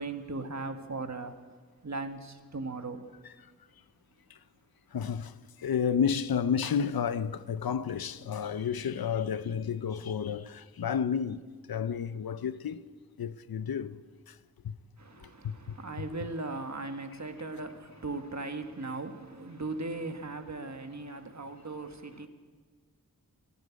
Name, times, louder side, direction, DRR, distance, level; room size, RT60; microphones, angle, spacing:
voice 1, 0.0-1.3 1.8-3.0 15.0-22.3, right 3 dB, 50° right, 1.4 m, -38 dB
voice 2, 4.9-11.4 11.7-12.9 13.2-14.0 14.3-14.4 14.6-14.7 15.2-15.8, left 7 dB, 90° left, 0.6 m, -31 dB
14.0 x 9.8 x 9.5 m
wide cardioid pair, 50°, 35 cm